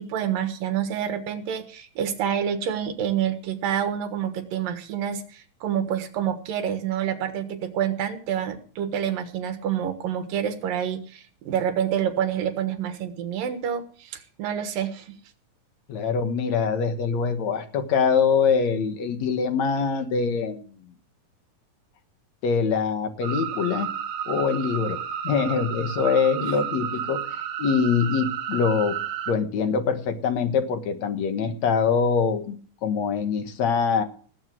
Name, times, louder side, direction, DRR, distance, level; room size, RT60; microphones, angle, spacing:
voice 1, 0.0-15.1 26.3-26.7, right 9 dB, 85° right, 8 dB, 3.2 m, -28 dB
voice 2, 15.9-20.7 22.4-23.9 24.3-29.0 29.3-34.0, left 6 dB, 60° left, 7 dB, 2.6 m, -24 dB
sound 1, 23.2-29.3, right 9 dB, 70° right, 2.6 m, -32 dB
18.5 x 8.6 x 6.2 m, 0.43 s
omnidirectional pair, 3.9 m